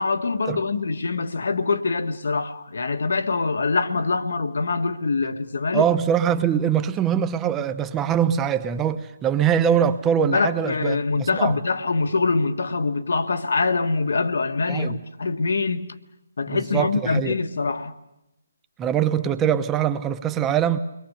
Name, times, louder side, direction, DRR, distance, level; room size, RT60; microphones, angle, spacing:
voice 1, 0.0-5.9 10.3-15.9 16.4-18.0, left 4 dB, 65° left, 1.4 m, -24 dB
voice 2, 5.7-11.6 14.7-15.0 16.5-17.4 18.8-20.8, right 9 dB, 15° right, 0.9 m, -23 dB
29.5 x 22.0 x 6.7 m
figure-of-eight pair, 145°, 0 cm